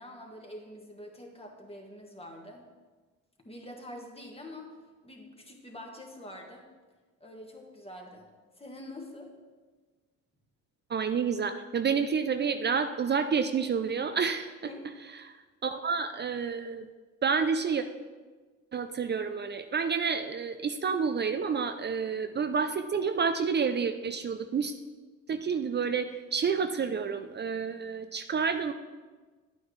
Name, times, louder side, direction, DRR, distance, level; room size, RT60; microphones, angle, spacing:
voice 1, 0.0-2.7 3.4-6.6 7.2-8.3 8.6-9.3 14.6-14.9, left 1 dB, 20° left, 1 dB, 1.7 m, -45 dB
voice 2, 10.9-14.5 15.3-15.4 15.6-16.9 17.2-17.8 18.7-24.7 25.3-28.7, right 6 dB, 35° right, 9 dB, 0.5 m, -29 dB
10.0 x 8.8 x 3.3 m, 1.3 s
cardioid pair, 90°, 30 cm